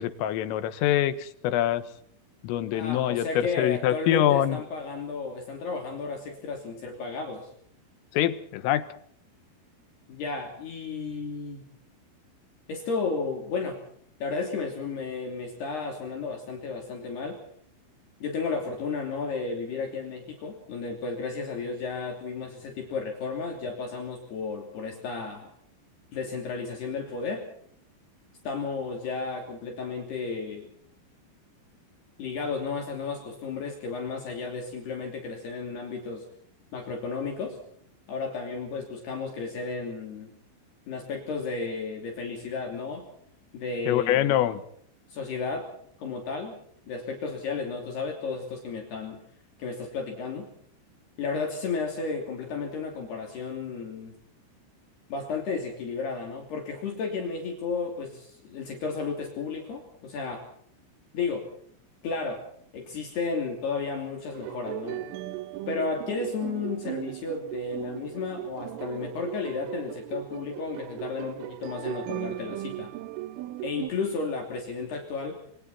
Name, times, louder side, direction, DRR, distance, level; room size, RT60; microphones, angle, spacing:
voice 1, 0.0-1.9 2.4-4.6 8.1-8.9 43.9-44.6, left 12 dB, 85° left, 12 dB, 3.8 m, -25 dB
voice 2, 2.7-7.5 10.1-11.7 12.7-13.8 14.2-17.4 18.2-25.5 26.1-27.5 28.4-30.7 32.2-36.3 36.7-37.6 38.1-40.3 40.9-43.1 43.5-44.5 45.1-45.7 46.0-46.6 46.9-49.2 49.6-50.5 51.2-54.1 55.1-60.5 61.1-61.5 62.0-62.4 62.7-65.1 65.7-72.9 73.6-75.4, left 4 dB, 55° left, 1 dB, 4.7 m, -33 dB
sound 1, 64.3-73.9, right 15 dB, 80° right, 3.5 m, -37 dB
27.5 x 23.5 x 4.3 m, 0.62 s
omnidirectional pair, 5.9 m